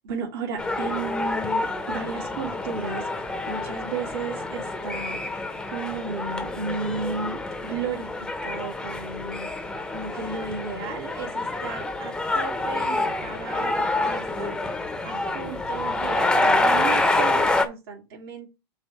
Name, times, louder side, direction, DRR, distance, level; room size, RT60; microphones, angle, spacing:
voice 1, 0.0-9.5 9.9-14.6 15.0-18.5, right 4 dB, 75° right, 2.6 m, -34 dB
sound 1, 0.6-17.7, left 2 dB, 5° left, 0.8 m, -27 dB
5.4 x 3.8 x 5.9 m
supercardioid pair, 140°, 12 cm